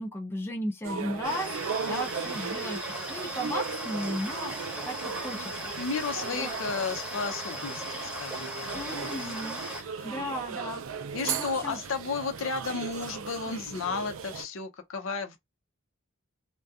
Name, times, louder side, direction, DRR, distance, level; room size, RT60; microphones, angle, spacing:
voice 1, 0.0-1.6 1.9-4.6 4.8-5.7 6.3-6.6 8.7-10.8 11.2-11.8, equal, 10° left, 0.4 m, -35 dB
sound 1, 0.8-14.4, right 6 dB, 70° right, 0.4 m, -37 dB
sound 2, 1.2-9.8, equal, 5° right, 0.8 m, -37 dB
voice 2, 5.8-9.2 9.9-10.2 11.1-15.4, left 4 dB, 65° left, 0.5 m, -33 dB
2.4 x 2.2 x 2.6 m
head